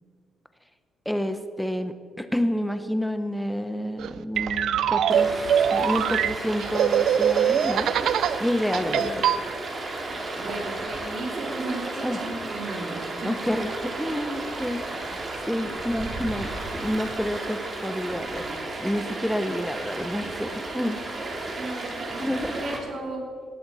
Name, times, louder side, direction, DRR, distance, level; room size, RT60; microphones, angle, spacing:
voice 1, 1.1-5.3 5.7-7.9 8.4-9.2 12.0-12.2 13.2-15.0 15.5-18.5 18.8-21.0 22.2-22.6, equal, ahead, 9 dB, 0.8 m, -29 dB
sound 1, 4.0-8.4 8.7-9.4, right 9 dB, 70° right, 0.4 m, -23 dB
Stream, 5.1-22.8, right 2 dB, 35° right, 2.6 m, -33 dB
voice 2, 8.9-9.3 10.3-13.5 15.6-15.7 21.5-23.2, right 2 dB, 50° right, -1 dB, 3.5 m, -35 dB
19.0 x 13.0 x 4.2 m, 2.2 s
cardioid pair, 125°, 0 cm